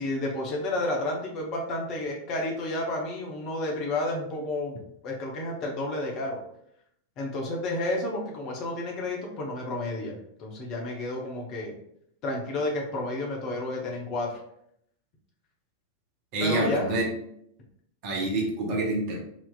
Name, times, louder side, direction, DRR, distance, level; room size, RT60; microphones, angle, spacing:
voice 1, 0.0-4.8 5.0-6.4 7.2-11.7 12.2-14.4 16.4-16.9, left 2 dB, 40° left, 0 dB, 0.9 m, -31 dB
voice 2, 16.3-17.1 18.0-19.2, right 2 dB, 45° right, -1 dB, 1.0 m, -27 dB
4.0 x 2.8 x 2.4 m, 0.72 s
figure-of-eight pair, 90°, 0 cm